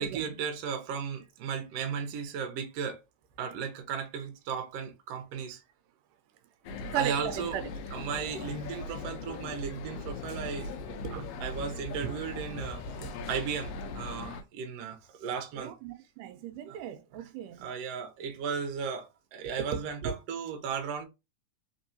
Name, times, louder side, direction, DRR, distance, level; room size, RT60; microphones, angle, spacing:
voice 1, 0.0-3.0 3.4-5.6 6.9-7.6 7.9-10.7 11.4-15.7 16.7-16.8 17.1-17.3 17.6-21.1, right 6 dB, 70° right, 1.6 m, -36 dB
sound 1, 6.6-14.4, left 3 dB, 85° left, 1.4 m, -39 dB
voice 2, 6.9-7.6 11.0-11.3 13.0-13.1 15.6-17.7 20.0-20.1, right 9 dB, 85° right, 2.2 m, -36 dB
4.5 x 3.6 x 2.7 m
omnidirectional pair, 3.7 m